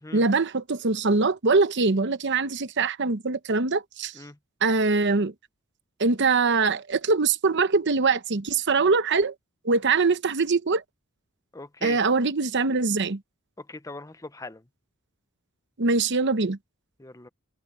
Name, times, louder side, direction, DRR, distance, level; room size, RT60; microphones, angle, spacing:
voice 1, 0.1-4.1 4.6-5.3 6.0-9.3 9.6-10.8 11.8-13.2 15.8-16.6, right 4 dB, 55° right, 0.9 m, -23 dB
voice 2, 11.5-12.0 13.6-14.6 17.0-17.3, left 2 dB, 15° left, 0.8 m, -40 dB
head